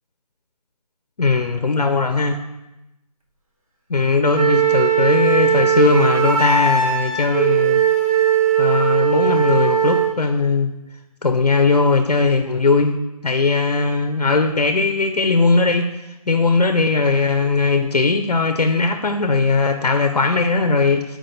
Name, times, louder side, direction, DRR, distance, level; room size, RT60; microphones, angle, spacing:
voice 1, 1.2-2.4 3.9-7.8 8.6-10.7 11.2-13.0 13.2-15.9 16.3-21.2, left 3 dB, 85° left, 5 dB, 0.6 m, -18 dB
Wind instrument woodwind instrument, 4.3-10.2, right 8 dB, 60° right, 1.1 m, -18 dB
7.4 x 4.8 x 2.6 m, 0.95 s
figure-of-eight pair, 155°, 20 cm